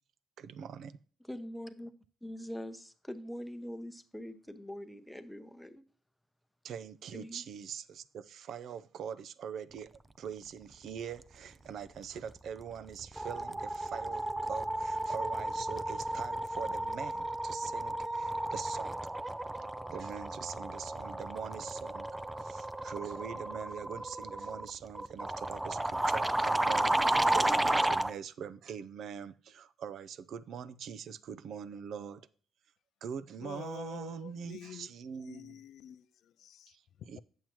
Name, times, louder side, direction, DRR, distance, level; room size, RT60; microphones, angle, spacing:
voice 1, 0.4-1.0 6.6-9.9 10.2-19.0 19.9-32.3 33.0-35.6 36.7-37.2, right 7 dB, 70° right, 0.5 m, -43 dB
voice 2, 1.3-1.9 2.2-5.8 7.1-7.4, equal, 5° left, 0.8 m, -43 dB
sound 1, 12.3-12.6 12.9-28.1, right 1 dB, 10° right, 0.4 m, -33 dB
voice 3, 33.4-34.9 35.2-36.8, left 10 dB, 75° left, 0.3 m, -47 dB
8.9 x 7.2 x 3.0 m
cardioid pair, 90°, 0 cm